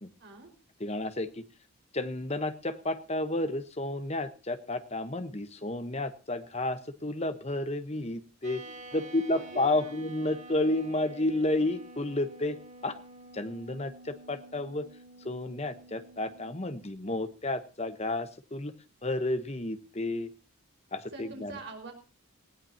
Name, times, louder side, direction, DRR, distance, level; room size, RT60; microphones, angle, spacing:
voice 1, 0.8-1.4 1.9-8.6 8.9-12.6 12.8-12.9 13.3-14.8 15.2-18.7 19.0-20.3 20.9-21.5, left 2 dB, 30° left, 10 dB, 1.1 m, -31 dB
sound 1, 8.4-17.0, right 2 dB, 35° right, 2.4 m, -49 dB
voice 2, 8.6-10.0 21.1-21.9, right 3 dB, 55° right, 3 dB, 5.1 m, -46 dB
19.5 x 16.5 x 2.9 m, 0.32 s
head